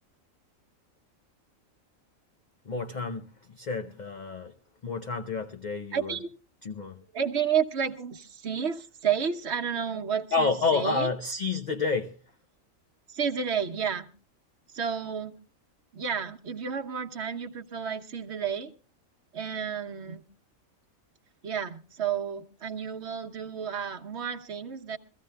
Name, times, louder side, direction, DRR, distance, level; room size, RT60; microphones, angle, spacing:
voice 1, 2.7-4.5 4.8-6.1 6.6-7.0 10.3-12.2, left 4 dB, 45° left, 0.6 m, -29 dB
voice 2, 5.9-6.3 7.1-11.1 13.1-14.1 14.7-15.3 15.9-18.7 19.3-20.2 21.4-25.0, right 7 dB, 55° right, 1.2 m, -31 dB
23.0 x 15.0 x 2.2 m
omnidirectional pair, 1.4 m